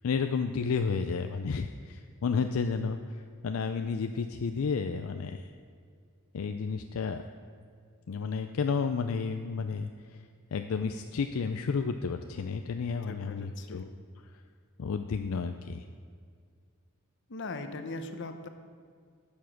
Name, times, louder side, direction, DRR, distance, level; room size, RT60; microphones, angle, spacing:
voice 1, 0.0-5.5 6.3-7.2 8.1-9.9 10.5-13.9 14.8-15.8, left 5 dB, 75° left, 7 dB, 0.4 m, -31 dB
voice 2, 13.1-13.9 17.3-18.5, left 2 dB, 60° left, 8 dB, 0.8 m, -40 dB
11.0 x 7.2 x 6.0 m, 2.1 s
head